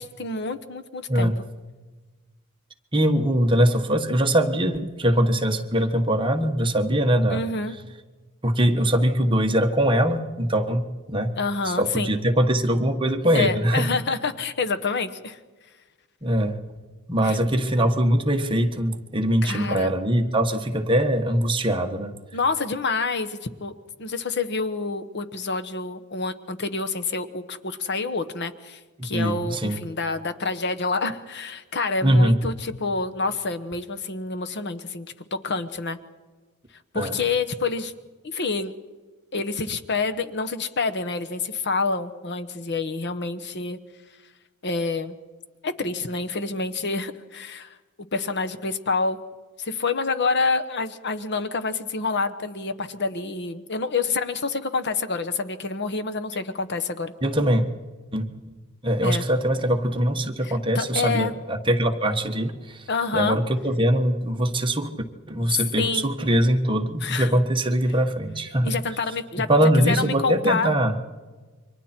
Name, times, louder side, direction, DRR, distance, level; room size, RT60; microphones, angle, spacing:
voice 1, 0.0-1.3 7.3-7.8 11.4-12.1 13.3-15.4 17.2-17.4 19.4-19.9 22.3-23.7 24.0-36.0 36.9-37.9 38.2-38.7 39.3-43.8 44.6-45.2 45.6-47.8 48.1-49.2 49.6-57.1 59.0-59.2 60.4-61.3 62.9-63.4 65.5-66.1 67.0-67.3 68.6-69.5 69.8-70.7, left 4 dB, 55° left, 9 dB, 1.1 m, -27 dB
voice 2, 2.9-7.4 8.4-11.3 11.6-13.9 16.2-16.6 17.1-22.1 29.1-29.7 32.0-32.4 36.9-37.2 57.2-57.6 58.1-58.5 58.8-62.9 63.1-64.9 65.3-68.7 69.5-71.0, right 1 dB, 25° right, 4 dB, 1.4 m, -22 dB
29.5 x 24.5 x 4.5 m, 1.3 s
head